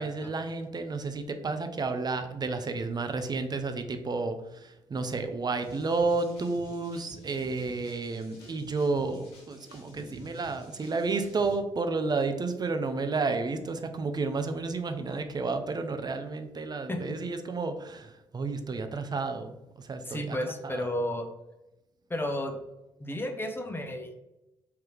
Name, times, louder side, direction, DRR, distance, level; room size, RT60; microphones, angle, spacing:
voice 1, 0.0-20.4 20.6-20.8, right 3 dB, 30° right, 7 dB, 0.6 m, -31 dB
sound 1, 5.6-11.5, equal, 85° left, 1.0 m, -51 dB
voice 2, 20.0-21.3 22.1-22.6 23.0-24.2, left 1 dB, 15° left, 5 dB, 0.8 m, -33 dB
3.8 x 2.8 x 3.3 m, 0.95 s
hypercardioid pair, 45°, 13 cm